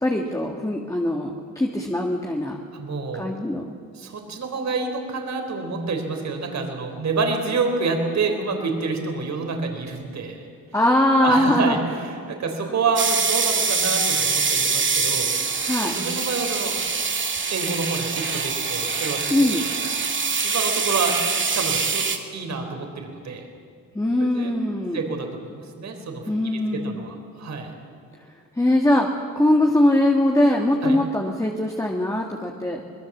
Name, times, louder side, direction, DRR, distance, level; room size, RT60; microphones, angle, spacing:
voice 1, 0.0-2.6 3.1-3.7 10.7-11.7 15.6-16.0 19.3-19.6 23.9-25.0 26.3-27.1 28.6-32.8, left 1 dB, 10° left, 0 dB, 1.7 m, -21 dB
voice 2, 2.7-3.2 3.9-10.5 11.2-15.3 15.8-16.8 17.5-19.5 20.4-21.2 21.5-23.5 24.2-24.5 24.9-25.3 25.6-27.7 30.8-31.0, right 4 dB, 55° right, 4 dB, 3.9 m, -28 dB
sound 1, 13.0-22.2, right 5 dB, 35° right, 2.1 m, -24 dB
24.0 x 21.5 x 7.3 m, 2.3 s
cardioid pair, 130°, 32 cm